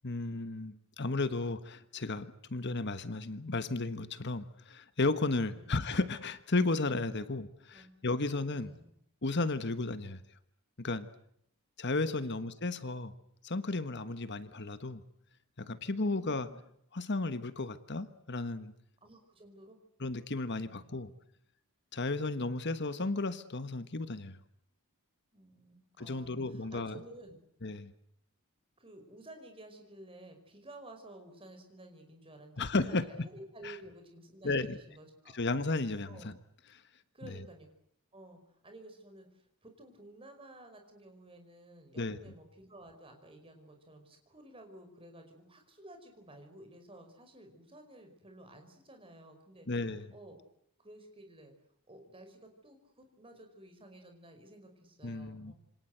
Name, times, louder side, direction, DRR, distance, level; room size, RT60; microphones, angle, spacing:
voice 1, 0.0-8.7 9.2-10.2 10.8-11.1 11.8-13.1 13.4-15.0 15.6-16.5 16.9-18.7 20.0-21.1 21.9-24.4 26.0-27.0 27.6-27.9 32.6-33.1 33.6-33.7 34.4-34.8 35.3-36.3 36.7-36.8 42.0-42.2 49.7-50.1 55.0-55.5, left 3 dB, 50° left, 12 dB, 1.3 m, -34 dB
voice 2, 8.5-8.9 12.2-12.4 16.0-16.6 19.0-19.8 20.6-21.0 25.3-27.4 28.8-35.4 36.1-36.3 37.1-37.7 38.1-49.7 50.1-50.4 50.8-51.5 51.9-55.5, right 1 dB, 25° right, 5 dB, 5.2 m, -53 dB
27.5 x 25.5 x 8.0 m, 0.73 s
head